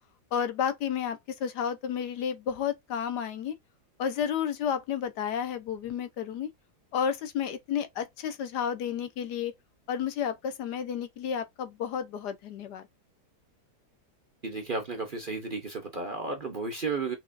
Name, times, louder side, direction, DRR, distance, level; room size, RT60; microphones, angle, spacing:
voice 1, 0.3-3.5 4.0-6.5 6.9-9.5 9.9-12.9, left 8 dB, 75° left, 1.4 m, -31 dB
voice 2, 14.4-17.2, right 4 dB, 40° right, 0.8 m, -33 dB
5.8 x 3.0 x 2.5 m
omnidirectional pair, 1.8 m